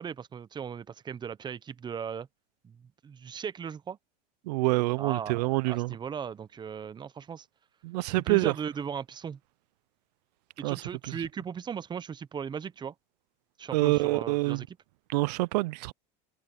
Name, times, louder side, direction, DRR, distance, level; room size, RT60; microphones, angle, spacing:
voice 1, 0.0-2.3 2.6-2.8 3.0-4.0 5.0-7.5 8.3-9.4 10.6-12.9 13.6-14.6, right 7 dB, 20° right, 0.8 m, -37 dB
voice 2, 4.5-6.0 7.8-8.5 10.6-11.2 13.7-14.7 15.1-15.9, right 22 dB, 80° right, 0.4 m, -27 dB
supercardioid pair, 120°, 21 cm